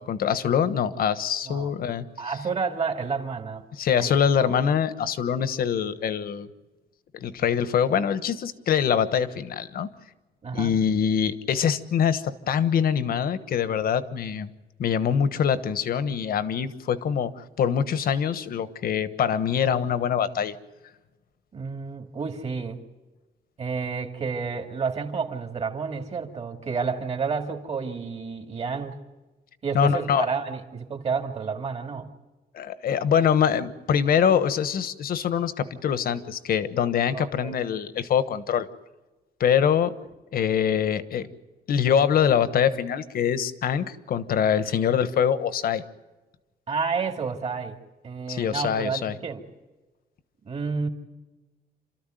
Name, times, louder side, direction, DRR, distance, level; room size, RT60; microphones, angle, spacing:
voice 1, 0.0-2.0 3.7-6.5 7.1-9.9 10.5-14.5 14.8-20.5 29.7-30.3 32.5-38.7 39.4-39.9 40.3-41.3 41.7-45.8 48.3-49.1, left 8 dB, 65° left, 13 dB, 1.3 m, -24 dB
voice 2, 2.2-3.6 3.9-4.5 10.4-10.8 21.5-22.8 23.6-29.0 29.6-32.1 37.1-37.6 46.7-47.8 48.0-49.5 50.4-50.9, right 5 dB, 40° right, 5 dB, 2.3 m, -30 dB
28.5 x 13.5 x 9.2 m, 1.2 s
cardioid pair, 150°, 17 cm